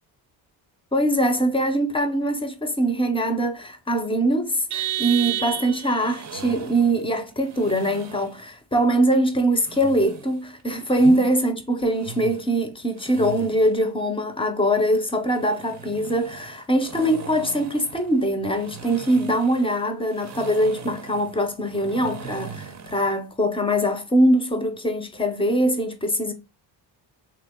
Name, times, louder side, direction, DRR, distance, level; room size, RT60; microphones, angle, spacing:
voice 1, 0.9-26.3, right 1 dB, 10° left, 0.6 m, -22 dB
Vehicle horn car horn honking, 4.7-6.1, right 13 dB, 85° right, 0.7 m, -28 dB
sound 1, 6.0-8.4 9.5-11.3 11.8-13.8 15.2-23.1, right 5 dB, 40° right, 0.6 m, -40 dB
3.3 x 2.9 x 3.5 m
cardioid pair, 120°, 46 cm